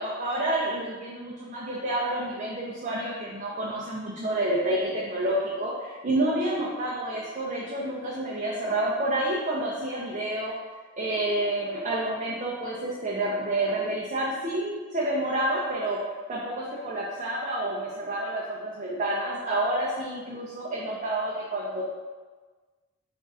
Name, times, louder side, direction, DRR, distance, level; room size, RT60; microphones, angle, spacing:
voice 1, 0.0-10.6 11.0-16.0 16.3-21.8, right 1 dB, 35° right, -6 dB, 0.5 m, -29 dB
3.5 x 2.5 x 4.1 m, 1.4 s
head